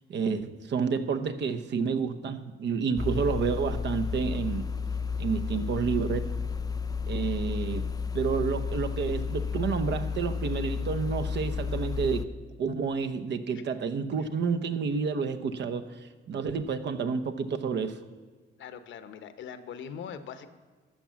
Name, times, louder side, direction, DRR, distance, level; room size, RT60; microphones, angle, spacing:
voice 1, 0.1-4.7 5.2-6.3 7.1-7.9 8.1-12.3 12.6-18.0, right 5 dB, 60° right, 10 dB, 0.9 m, -30 dB
sound 1, 3.0-12.2, left 5 dB, 20° left, 0.5 m, -32 dB
voice 2, 18.6-20.5, left 7 dB, 75° left, 11 dB, 0.9 m, -41 dB
13.0 x 6.0 x 7.5 m, 1.5 s
cardioid pair, 90°, 20 cm